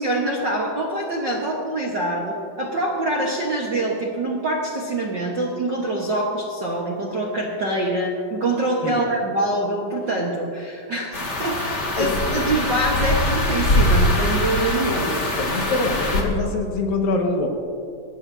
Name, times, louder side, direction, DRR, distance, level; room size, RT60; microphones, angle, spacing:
voice 1, 0.0-15.1, right 1 dB, 50° right, -3 dB, 1.3 m, -25 dB
sound 1, 11.1-16.2, left 1 dB, 35° left, 2.2 m, -22 dB
voice 2, 12.0-12.5 15.0-17.5, left 2 dB, 75° left, 1 dB, 3.4 m, -25 dB
23.0 x 18.5 x 2.8 m, 2.4 s
omnidirectional pair, 4.1 m